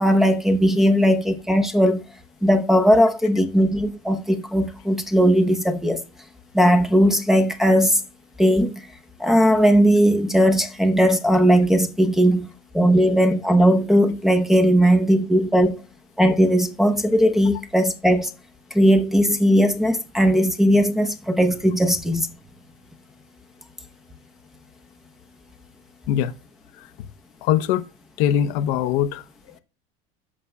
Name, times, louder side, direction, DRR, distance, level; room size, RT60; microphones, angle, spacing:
voice 1, 0.0-2.0 2.4-6.0 6.5-8.0 8.4-8.8 9.2-12.5 12.7-15.8 16.2-18.3 18.7-22.3, equal, ahead, 0.8 m, -18 dB
voice 2, 27.4-27.8 28.2-29.2, left 10 dB, 70° left, 0.8 m, -21 dB
13.5 x 5.2 x 2.3 m
supercardioid pair, 130°, 18 cm